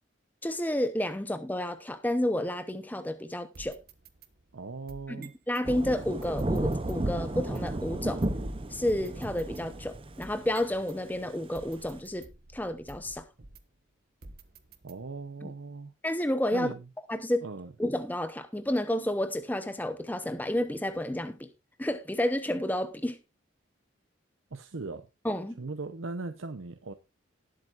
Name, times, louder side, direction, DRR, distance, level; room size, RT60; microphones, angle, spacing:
voice 1, 0.4-3.8 5.1-8.3 8.7-13.2 15.4-15.5 16.0-16.7 17.1-17.4 17.8-21.5 21.8-23.2 25.2-25.6, left 1 dB, 10° left, 0.7 m, -31 dB
sound 1, 3.5-5.7 6.2-7.8 8.2-8.3 8.9-11.0 11.5-13.8 14.2-15.3, right 2 dB, 45° right, 1.0 m, -51 dB
voice 2, 4.5-5.3 14.8-15.9 16.5-16.8 17.4-17.7 24.5-25.1 25.6-26.9, right 3 dB, 80° right, 0.8 m, -38 dB
Thunder / Rain, 5.6-12.0, right 1 dB, 25° right, 0.7 m, -33 dB
19.0 x 7.7 x 2.5 m
head